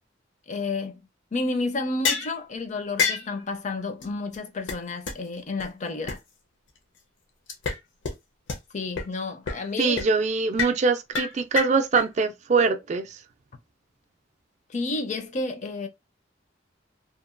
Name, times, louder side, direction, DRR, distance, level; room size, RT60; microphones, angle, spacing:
voice 1, 0.5-1.0 1.3-6.2 8.7-10.0 14.7-15.9, left 3 dB, 40° left, 0.5 m, -31 dB
sound 1, 2.0-2.3 3.0-3.3 4.0-4.1 4.3-4.4 4.7-4.8 5.1-5.2 5.6-5.7 6.1-6.2 7.5-7.8 8.0-8.1 8.5-8.6 9.0-9.1 9.5-9.7 10.0-10.1 10.6-10.8 11.1-12.0, left 5 dB, 75° left, 0.7 m, -27 dB
voice 2, 9.8-13.2, right 4 dB, 40° right, 0.4 m, -23 dB
2.8 x 2.2 x 2.4 m
head